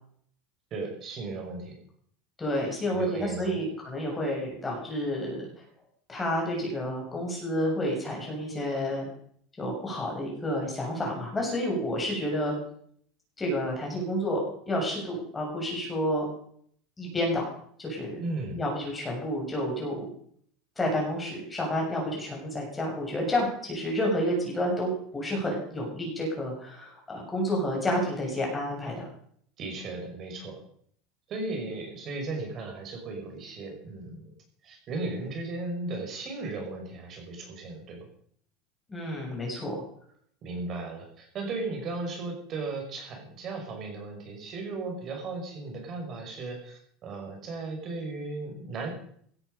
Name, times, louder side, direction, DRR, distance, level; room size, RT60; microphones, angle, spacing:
voice 1, 0.7-1.7 2.9-3.6 18.2-18.6 29.6-30.6 31.3-34.3 34.6-38.1 40.4-48.9, right 3 dB, 35° right, 2 dB, 5.7 m, -36 dB
voice 2, 2.4-5.4 6.1-9.1 9.6-12.5 13.4-14.4 14.7-16.2 17.0-17.5 17.8-18.2 18.6-20.1 20.8-29.1 38.9-39.8, equal, 15° left, -1 dB, 6.9 m, -30 dB
17.0 x 13.0 x 5.4 m, 0.63 s
supercardioid pair, 145°, 0 cm